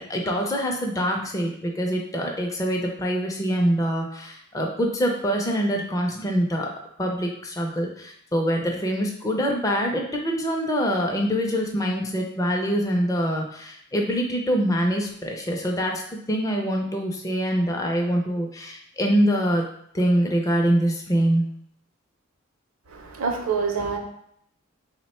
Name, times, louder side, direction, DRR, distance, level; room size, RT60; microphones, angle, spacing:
voice 1, 0.1-6.7 7.0-16.0 16.3-19.6 19.9-21.5, equal, 15° left, 1 dB, 0.4 m, -24 dB
voice 2, 22.9-24.0, right 5 dB, 70° right, 3 dB, 0.6 m, -26 dB
3.2 x 2.1 x 4.1 m, 0.70 s
head